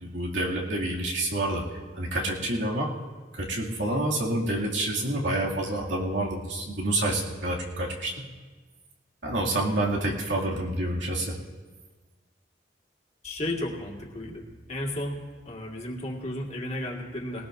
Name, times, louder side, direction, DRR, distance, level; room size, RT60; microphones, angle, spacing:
voice 1, 0.0-1.6 2.0-2.9 3.5-8.1 9.2-11.3, right 1 dB, 80° right, -3 dB, 2.4 m, -28 dB
voice 2, 13.2-15.2 15.5-17.5, left 1 dB, 35° left, -1 dB, 1.8 m, -33 dB
19.5 x 18.5 x 2.6 m, 1.4 s
head